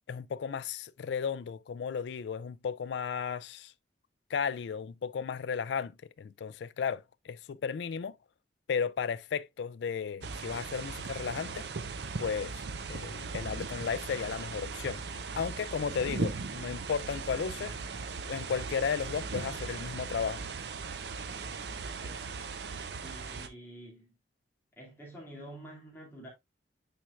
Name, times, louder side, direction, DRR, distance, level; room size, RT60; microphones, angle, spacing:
voice 1, 0.1-3.7 4.3-5.9 6.2-8.1 8.7-11.7 12.2-12.6 12.9-15.0 15.4-17.7 18.2-20.4, left 6 dB, 70° left, 0.3 m, -34 dB
sound 1, 10.2-23.5, right 4 dB, 65° right, 0.6 m, -38 dB
voice 2, 21.8-22.4 23.0-24.1 24.8-26.3, right 1 dB, 10° left, 2.2 m, -48 dB
9.0 x 4.4 x 2.3 m
head